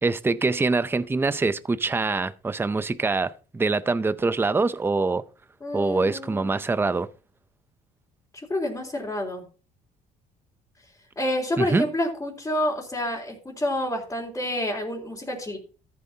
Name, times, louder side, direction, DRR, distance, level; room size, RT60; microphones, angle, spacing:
voice 1, 0.0-5.2 5.7-7.1 11.6-11.9, right 3 dB, 15° right, 0.6 m, -24 dB
voice 2, 5.6-6.5 8.5-9.4 11.2-15.6, left 1 dB, 15° left, 3.6 m, -28 dB
13.5 x 9.3 x 2.8 m
cardioid pair, 110°, 17 cm